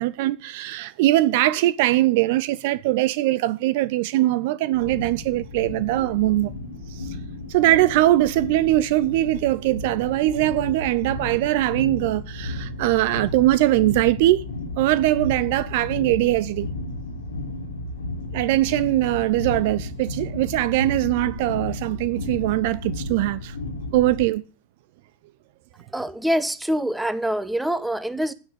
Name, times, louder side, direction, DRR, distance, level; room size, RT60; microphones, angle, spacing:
voice 1, 0.0-6.6 6.9-7.2 7.5-14.4 14.8-16.7 18.3-23.6 23.9-24.4, right 16 dB, 50° right, 0.6 m, -21 dB
sound 1, 4.7-24.2, left 2 dB, 70° left, 2.0 m, -33 dB
voice 2, 25.9-28.3, equal, 5° right, 1.3 m, -25 dB
11.5 x 10.0 x 8.3 m
figure-of-eight pair, 90°, 0 cm